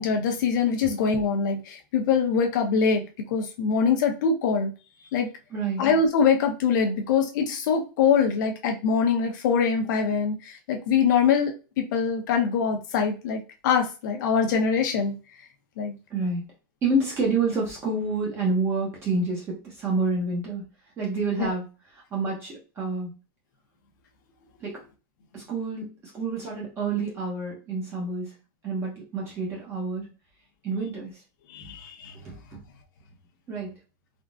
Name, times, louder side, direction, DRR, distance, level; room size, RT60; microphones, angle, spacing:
voice 1, 0.0-4.7 5.1-5.3 5.8-15.2 15.8-16.0 21.4-21.5 31.5-32.1, left 6 dB, 60° left, 4 dB, 0.8 m, -24 dB
voice 2, 5.5-5.9 16.1-16.4 16.8-20.6 21.0-21.6 21.9-23.1 24.6-24.8 25.3-25.9 26.1-28.3 28.6-30.1 30.6-31.2 32.2-32.6 33.5-33.7, right 3 dB, 20° right, -3 dB, 0.8 m, -28 dB
3.6 x 2.4 x 2.4 m, 0.31 s
supercardioid pair, 165°, 11 cm